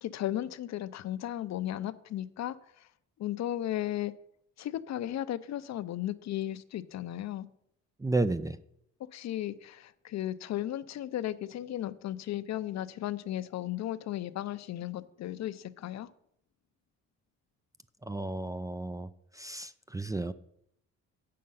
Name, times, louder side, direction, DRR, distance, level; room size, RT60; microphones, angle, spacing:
voice 1, 0.0-2.9 3.2-4.1 4.6-7.5 9.1-16.1, left 12 dB, 60° left, 0.6 m, -35 dB
voice 2, 8.0-8.6 18.0-19.1 19.3-20.3, right 2 dB, 10° right, 0.4 m, -32 dB
8.5 x 6.5 x 5.6 m
cardioid pair, 90°, 30 cm